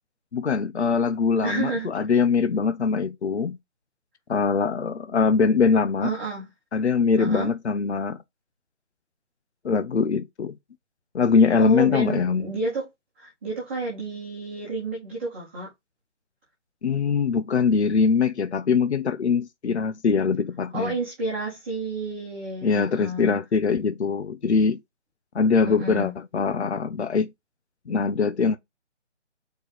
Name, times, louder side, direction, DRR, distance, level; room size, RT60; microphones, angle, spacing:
voice 1, 0.3-3.6 4.3-6.1 6.7-8.2 9.6-10.5 11.1-12.5 16.8-21.0 22.6-24.8 25.3-27.3 27.9-28.6, left 5 dB, 65° left, 0.9 m, -22 dB
voice 2, 1.4-1.9 6.0-6.5 7.2-7.5 11.6-12.9 13.2-15.7 20.7-23.3 25.6-26.1, right 2 dB, 10° right, 1.7 m, -30 dB
4.6 x 4.6 x 5.0 m
hypercardioid pair, 175°, 36 cm